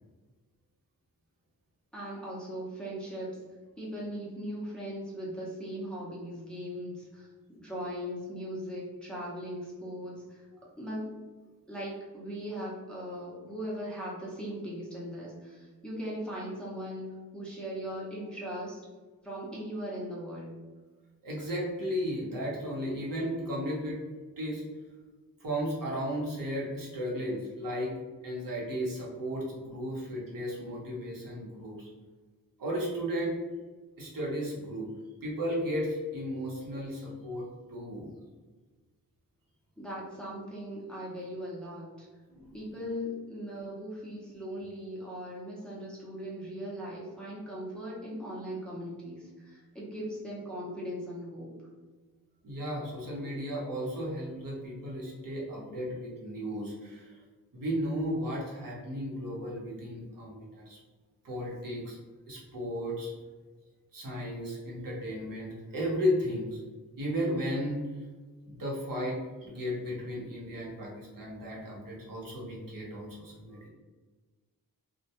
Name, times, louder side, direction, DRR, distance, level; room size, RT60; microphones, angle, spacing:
voice 1, 1.9-3.4 3.8-10.5 10.8-11.1 11.7-18.8 19.2-20.6 39.8-42.1 42.5-51.5, equal, 5° left, -6 dB, 0.6 m, -39 dB
voice 2, 21.2-24.0 24.4-24.6 25.4-27.9 28.2-31.9 32.6-33.4 34.0-34.9 35.2-38.1 42.3-42.6 52.4-57.2 57.5-60.8 61.2-62.0 62.3-63.1 63.9-66.6 67.0-67.9 68.4-73.7, equal, 70° right, -4 dB, 0.8 m, -34 dB
2.1 x 2.1 x 2.8 m, 1.3 s
wide cardioid pair, 135°, 35 cm